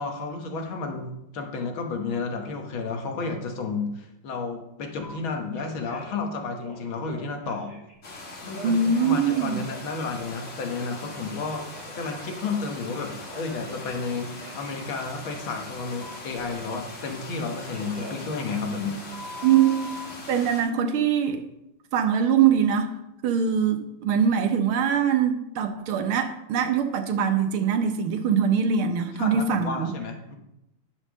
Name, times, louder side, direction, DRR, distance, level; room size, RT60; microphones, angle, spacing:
voice 1, 0.0-7.8 8.4-11.7 11.9-19.0 29.1-30.3, left 4 dB, 70° left, 3 dB, 2.0 m, -32 dB
Telephone, 5.0-5.1 5.5-6.2 6.5-7.9 8.5-11.0 11.3-14.0 14.4-14.7 16.0-17.4 17.7-20.1, left 1 dB, 10° right, 4.6 m, -44 dB
sound 1, 8.0-20.6, left 2 dB, 35° left, 1.8 m, -41 dB
voice 2, 8.6-9.6 19.4-19.9 20.3-21.4 21.9-22.9 23.2-29.9, right 7 dB, 80° right, 7 dB, 1.8 m, -23 dB
10.5 x 5.5 x 6.3 m, 0.86 s
omnidirectional pair, 2.3 m